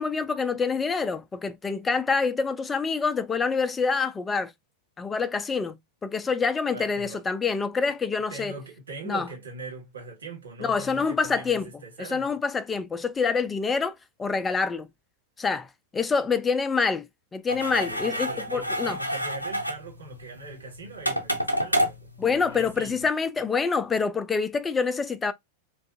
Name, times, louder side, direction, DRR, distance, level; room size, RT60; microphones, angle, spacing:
voice 1, 0.0-4.5 5.0-8.5 9.0-9.3 10.6-11.7 12.0-14.9 15.4-15.7 15.9-17.1 17.3-19.0 22.2-25.3, left 5 dB, 15° left, 0.3 m, -26 dB
voice 2, 6.7-7.2 8.3-12.4 18.0-22.1 22.5-23.0, right 3 dB, 70° right, 1.4 m, -41 dB
sound 1, 17.5-23.1, equal, 85° left, 0.5 m, -30 dB
2.5 x 2.4 x 2.4 m
figure-of-eight pair, 90°, 0 cm